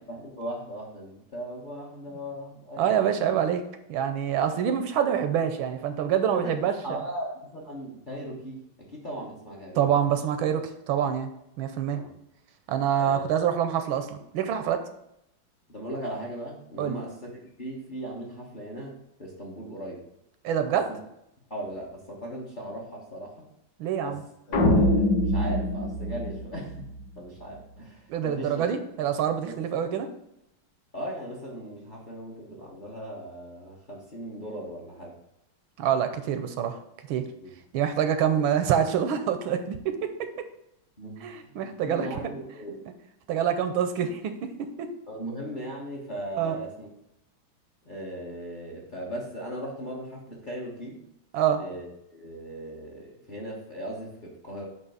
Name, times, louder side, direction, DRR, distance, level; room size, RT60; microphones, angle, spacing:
voice 1, 0.1-2.9 6.3-8.6 8.9-9.8 11.9-12.1 13.0-13.3 15.7-20.0 20.9-21.0 21.5-23.5 24.0-24.1 24.5-26.9 27.2-28.7 29.4-29.5 30.9-35.1 37.4-37.5 41.0-42.8 45.1-46.9 47.8-51.0 51.6-54.7, right 1 dB, 30° left, -2 dB, 1.0 m, -38 dB
voice 2, 2.8-3.6 3.9-6.7 9.7-10.6 10.9-11.3 11.6-12.0 12.7-14.8 16.8-17.0 20.4-20.9 23.8-24.2 28.1-30.1 35.8-36.8 37.1-37.3 37.7-40.1 41.2-42.1 43.3-44.9 46.4-46.6 51.3-51.6, right 9 dB, 80° right, 8 dB, 1.4 m, -26 dB
sound 1, 24.5-27.0, left 1 dB, 55° left, 2.0 m, -24 dB
8.2 x 3.0 x 5.5 m, 0.80 s
omnidirectional pair, 2.3 m